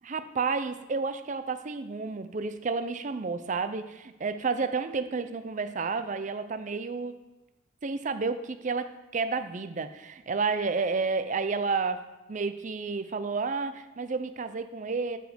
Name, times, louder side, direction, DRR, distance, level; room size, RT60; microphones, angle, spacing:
voice 1, 0.0-7.2 7.8-15.2, right 4 dB, 40° right, 10 dB, 0.5 m, -31 dB
12.5 x 5.1 x 5.1 m, 1.0 s
head